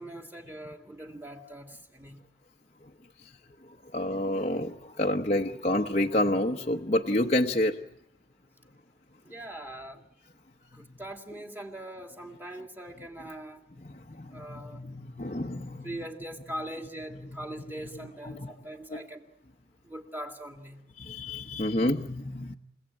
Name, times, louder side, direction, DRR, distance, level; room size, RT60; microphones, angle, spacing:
voice 1, 0.0-2.1 9.2-10.0 10.7-13.6 14.3-14.8 15.8-19.3 19.8-20.8, right 1 dB, 10° right, 3 dB, 2.3 m, -41 dB
voice 2, 3.9-7.8 14.2-16.0 17.1-17.3 18.2-19.0 21.0-22.5, left 1 dB, 35° left, 1 dB, 0.9 m, -29 dB
29.0 x 17.0 x 8.7 m, 0.83 s
head